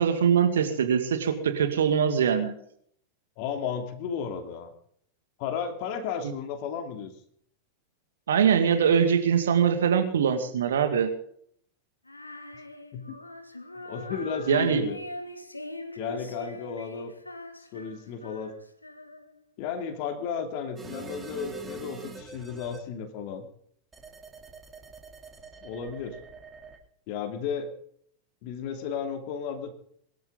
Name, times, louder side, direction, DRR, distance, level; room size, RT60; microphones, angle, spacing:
voice 1, 0.0-2.5 8.3-11.1 14.5-14.8, right 7 dB, 65° right, 8 dB, 2.2 m, -23 dB
voice 2, 3.4-4.7 5.4-7.1 12.9-13.2 13.8-15.0 16.0-17.1 17.7-18.5 19.6-23.5 25.6-26.2 27.1-27.7 28.4-29.7, left 7 dB, 45° left, 6 dB, 2.7 m, -33 dB
Female singing, 12.1-19.4, left 2 dB, 85° left, 1.8 m, -42 dB
sound 1, 20.8-22.8 23.9-26.8, right 3 dB, 15° right, 3.3 m, -44 dB
23.0 x 13.5 x 4.0 m, 0.64 s
figure-of-eight pair, 90°, 0 cm